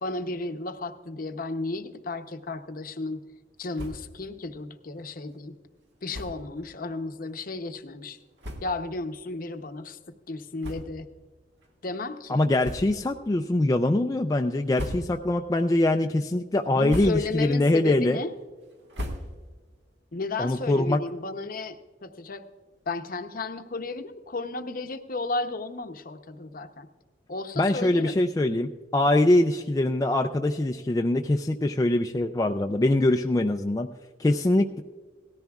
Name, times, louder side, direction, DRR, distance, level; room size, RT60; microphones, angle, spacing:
voice 1, 0.0-3.2 3.6-5.6 6.0-8.2 8.6-10.0 10.3-11.1 11.8-12.4 16.8-18.3 20.1-22.4 22.9-26.9 27.3-28.2, left 3 dB, 50° left, 8 dB, 0.7 m, -33 dB
sound 1, 3.7-4.2 4.5-4.6 4.9-5.1 6.1-6.5 7.3-7.4 8.0-8.1 8.4-8.9 9.5-9.6 10.6-11.2 11.6-11.7 12.6-13.2 13.6-14.1 14.5-15.4 15.8-16.2 16.6-17.5 17.9-19.7, equal, 70° right, 1.7 m, -39 dB
voice 2, 12.3-18.2 20.4-21.0 27.6-33.9 34.2-34.8, left 1 dB, 20° left, 4 dB, 0.3 m, -23 dB
17.5 x 14.0 x 2.3 m, 1.4 s
head